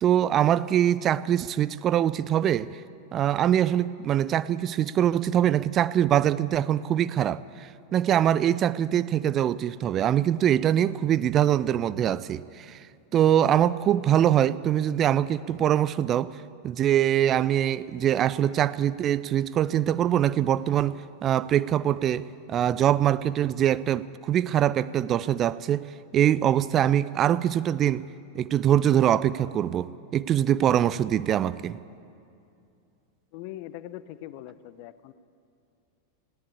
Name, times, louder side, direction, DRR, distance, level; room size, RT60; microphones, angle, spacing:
voice 1, 0.0-2.8 3.1-12.8 13.1-16.4 16.6-28.0 28.3-31.8, right 10 dB, 30° right, 0.4 m, -23 dB
voice 2, 33.3-35.1, left 13 dB, 45° left, 0.8 m, -41 dB
19.0 x 16.5 x 8.7 m
figure-of-eight pair, 90°, 0 cm